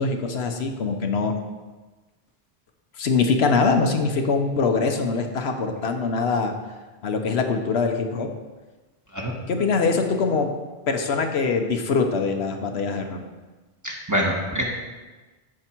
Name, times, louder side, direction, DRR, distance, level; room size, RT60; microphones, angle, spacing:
voice 1, 0.0-1.3 3.0-6.5 7.0-8.3 9.5-10.5 10.9-13.2, left 4 dB, 80° left, 4 dB, 1.1 m, -23 dB
voice 2, 13.8-14.6, equal, 15° right, -2 dB, 1.3 m, -25 dB
13.0 x 4.8 x 4.5 m, 1.3 s
omnidirectional pair, 1.1 m